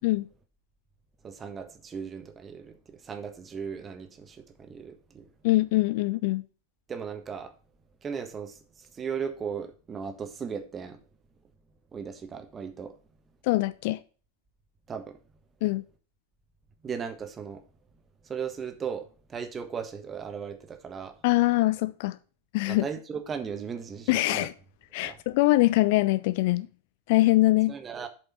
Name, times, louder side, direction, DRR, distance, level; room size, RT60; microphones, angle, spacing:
voice 1, 1.2-5.3 6.9-7.5 8.0-11.0 11.9-12.9 14.9-15.2 16.8-17.6 18.2-21.1 22.7-24.5 25.0-25.2 27.7-28.1, right 6 dB, 20° right, 1.4 m, -37 dB
voice 2, 5.4-6.4 13.4-14.0 15.6-15.8 21.2-22.2 22.5-22.8 24.1-24.5 24.9-26.7 27.1-27.7, left 19 dB, 50° left, 0.5 m, -23 dB
7.5 x 5.3 x 5.6 m
figure-of-eight pair, 90°, 0 cm